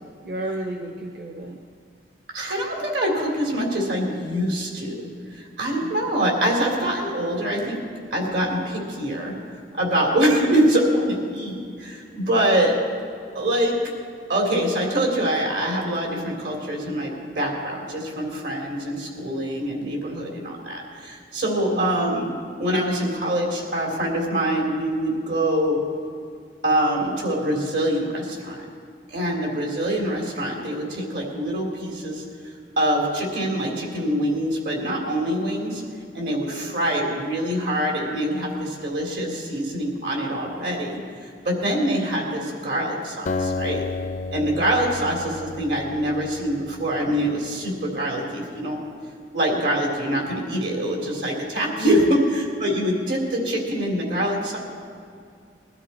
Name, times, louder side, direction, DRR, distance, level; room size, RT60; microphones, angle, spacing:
voice 1, 0.2-1.6 5.8-5.9 13.2-13.4 21.7-21.9 30.0-30.2 51.8-52.2 53.2-53.3, right 1 dB, 55° right, 3 dB, 0.9 m, -32 dB
voice 2, 2.3-5.0 5.6-7.8 8.1-9.4 9.7-12.7 13.3-13.8 14.3-22.3 22.6-25.8 26.6-28.6 29.1-32.2 32.8-35.8 36.1-43.9 44.3-48.8 49.3-54.6, right 1 dB, 75° right, 0 dB, 3.4 m, -24 dB
Acoustic guitar, 43.3-46.8, left 3 dB, 45° left, 0.4 m, -31 dB
21.0 x 12.5 x 4.3 m, 2.3 s
head